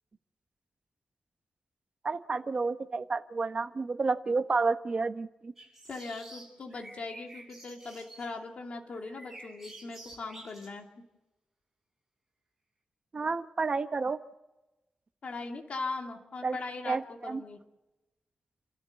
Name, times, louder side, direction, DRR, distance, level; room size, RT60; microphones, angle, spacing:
voice 1, 2.0-5.5 13.1-14.2 16.4-16.6 16.9-17.4, right 4 dB, 40° right, 9 dB, 1.1 m, -30 dB
sound 1, 5.6-8.4 8.8-10.7, right 2 dB, 10° right, 7.8 m, -50 dB
voice 2, 5.9-10.9 15.2-17.6, left 3 dB, 55° left, 2 dB, 2.6 m, -40 dB
30.0 x 13.5 x 8.3 m, 1.0 s
wide cardioid pair, 130°, 3 cm